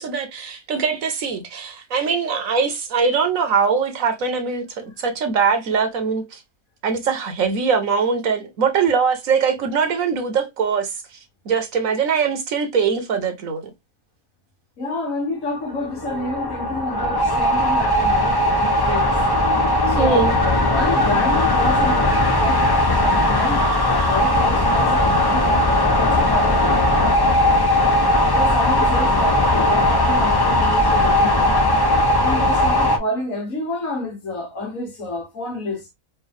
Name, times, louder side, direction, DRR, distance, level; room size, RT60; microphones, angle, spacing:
voice 1, 0.0-6.4 6.8-11.2 11.4-13.7 20.0-20.3, right 5 dB, 70° right, 1.3 m, -22 dB
voice 2, 14.8-19.2 19.9-20.3 20.7-27.6 28.3-31.6 32.1-35.9, left 2 dB, 70° left, 2.0 m, -30 dB
sound 1, 15.6-33.0, left 1 dB, 30° left, 0.4 m, -18 dB
4.5 x 2.6 x 3.3 m
omnidirectional pair, 1.5 m